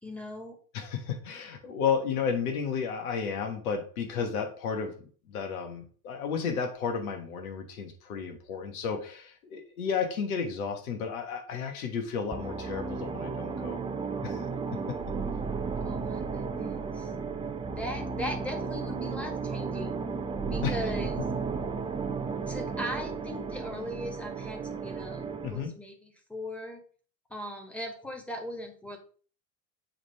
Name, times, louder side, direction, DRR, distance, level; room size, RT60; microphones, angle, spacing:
voice 1, 0.0-0.6 15.8-17.1 17.8-20.0 20.5-21.2 22.5-25.2 25.5-26.8 27.3-29.0, left 1 dB, 5° left, 4 dB, 1.8 m, -39 dB
voice 2, 0.7-4.9 5.3-13.8 14.2-14.4 14.9-15.0 20.6-20.7 25.4-25.7, left 6 dB, 70° left, 5 dB, 1.5 m, -32 dB
sound 1, 12.3-25.6, right 5 dB, 10° right, 0.6 m, -34 dB
7.7 x 3.5 x 4.3 m, 0.42 s
figure-of-eight pair, 75°, 45 cm